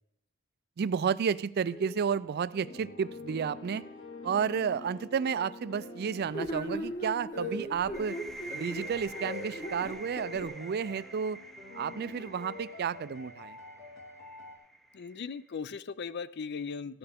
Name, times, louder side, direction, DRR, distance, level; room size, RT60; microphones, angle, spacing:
voice 1, 0.8-3.8 4.2-8.2 8.5-11.4 11.7-13.6, right 7 dB, 50° right, 17 dB, 0.4 m, -31 dB
sound 1, 1.6-14.6, left 2 dB, 70° left, 2.5 m, -47 dB
sound 2, 6.3-10.5, equal, 35° left, 1.3 m, -37 dB
sound 3, 7.9-15.5, right 2 dB, ahead, 0.6 m, -47 dB
voice 2, 14.9-17.0, left 5 dB, 50° left, 16 dB, 0.5 m, -38 dB
14.0 x 8.9 x 3.5 m, 0.85 s
head